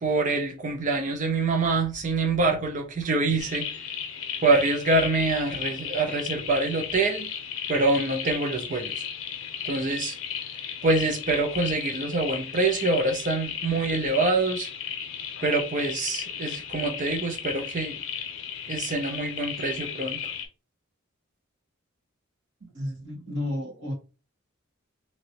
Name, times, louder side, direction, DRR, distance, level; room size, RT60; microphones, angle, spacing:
voice 1, 0.0-3.7 4.4-7.3 7.7-9.1 9.7-10.2 10.8-14.7 15.4-18.0 18.7-20.2, right 3 dB, 35° right, 0.4 m, -25 dB
sound 1, 3.4-20.5, left 8 dB, 75° left, 0.7 m, -35 dB
voice 2, 22.6-23.9, left 1 dB, 60° right, 1.3 m, -32 dB
2.9 x 2.7 x 2.8 m
head